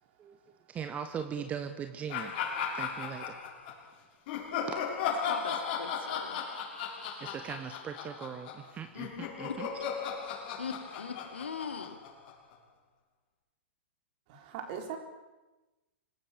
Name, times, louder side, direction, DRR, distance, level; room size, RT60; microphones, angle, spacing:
voice 1, 0.7-2.3 2.7-3.4 7.2-9.7, right 7 dB, 20° right, 8 dB, 1.5 m, -39 dB
sound 1, 2.1-3.7 4.3-12.5, left 6 dB, 45° left, 7.1 m, -36 dB
voice 2, 5.0-6.4 9.5-9.6 10.6-12.0, left 6 dB, 75° left, 6 dB, 3.0 m, -40 dB
voice 3, 14.3-15.0, right 7 dB, 45° right, 4 dB, 4.4 m, -39 dB
27.0 x 19.0 x 7.1 m, 1.1 s
figure-of-eight pair, 105°, 6 cm